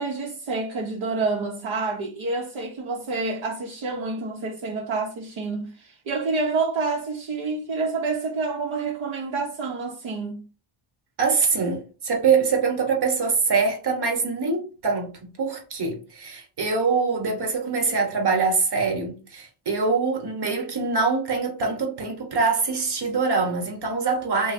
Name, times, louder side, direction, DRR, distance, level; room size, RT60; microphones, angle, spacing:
voice 1, 0.0-10.5, right 3 dB, 70° right, 0.9 m, -28 dB
voice 2, 11.2-15.1 15.4-24.5, right 4 dB, 50° right, 1.2 m, -24 dB
3.0 x 2.2 x 4.2 m
cardioid pair, 100°, 49 cm